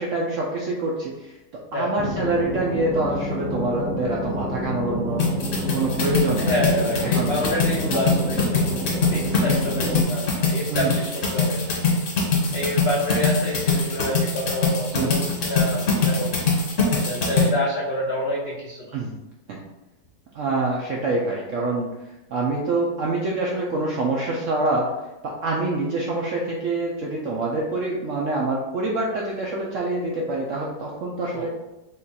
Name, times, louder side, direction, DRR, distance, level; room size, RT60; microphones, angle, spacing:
voice 1, 0.0-1.3 1.7-5.3 5.7-6.6 7.0-7.4 7.9-8.0 9.7-10.0 10.7-11.1 14.9-15.3 18.9-19.1 19.5-19.6 20.3-21.9 22.3-24.9 25.2-31.5, right 2 dB, 75° right, -3 dB, 0.7 m, -26 dB
sound 1, 2.0-10.0, equal, 5° right, 0.7 m, -29 dB
sound 2, 5.2-17.5, left 3 dB, 50° left, 1.3 m, -23 dB
voice 2, 6.4-8.7 9.1-11.8 12.5-16.4 16.9-18.9 31.3-31.5, left 1 dB, 80° left, -3 dB, 0.5 m, -28 dB
3.7 x 2.3 x 4.0 m, 0.98 s
omnidirectional pair, 1.8 m